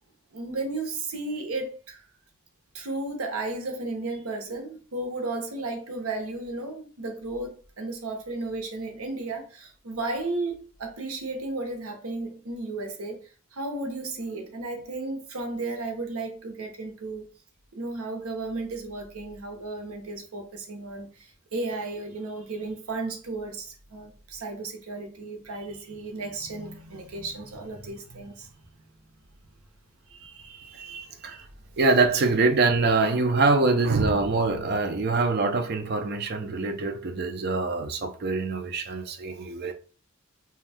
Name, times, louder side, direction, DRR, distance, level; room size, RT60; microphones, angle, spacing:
voice 1, 0.3-2.0 2.7-17.2 17.7-28.5 30.1-31.4, right 2 dB, 80° right, 0.7 m, -34 dB
voice 2, 31.8-39.7, right 3 dB, 45° right, 0.4 m, -24 dB
2.6 x 2.2 x 3.3 m
head